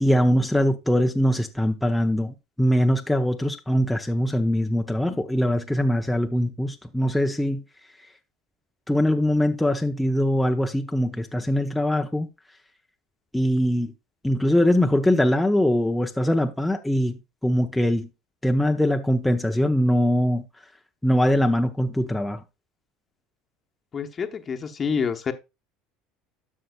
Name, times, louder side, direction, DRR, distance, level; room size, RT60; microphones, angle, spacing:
voice 1, 0.0-7.6 8.9-12.3 13.3-13.9 14.2-17.2 17.4-18.1 18.4-20.4 21.0-22.4, equal, 5° left, 0.7 m, -22 dB
voice 2, 23.9-25.3, left 6 dB, 35° left, 1.0 m, -27 dB
13.0 x 5.6 x 2.4 m
hypercardioid pair, 85°, 0 cm